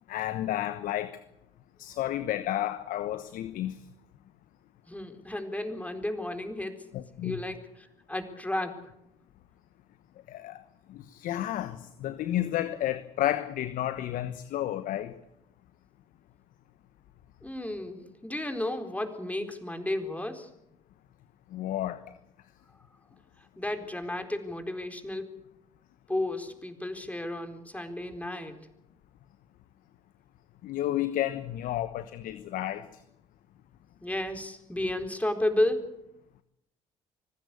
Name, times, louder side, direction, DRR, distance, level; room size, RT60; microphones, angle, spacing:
voice 1, 0.1-1.2 1.8-3.7 6.9-7.4 10.3-10.6 10.9-15.1 21.5-22.0 30.6-32.9, left 13 dB, 70° left, 1.2 m, -31 dB
voice 2, 4.9-6.9 7.2-8.8 17.4-20.5 23.6-25.4 26.1-28.7 34.0-35.9, left 1 dB, 10° left, 4.1 m, -33 dB
25.0 x 15.5 x 8.4 m
hypercardioid pair, 55°, 15 cm